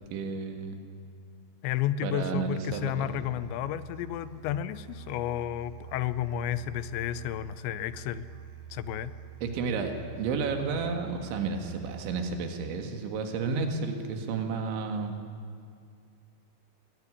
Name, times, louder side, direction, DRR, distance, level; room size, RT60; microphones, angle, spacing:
voice 1, 0.1-0.8 2.0-3.1 9.4-15.2, right 5 dB, 85° right, 4 dB, 4.2 m, -32 dB
voice 2, 1.6-8.3 8.7-9.2, left 11 dB, 85° left, 14 dB, 3.0 m, -32 dB
Musical instrument, 2.6-12.6, right 9 dB, 60° right, 2.8 m, -46 dB
23.0 x 17.5 x 9.9 m, 2.3 s
omnidirectional pair, 5.2 m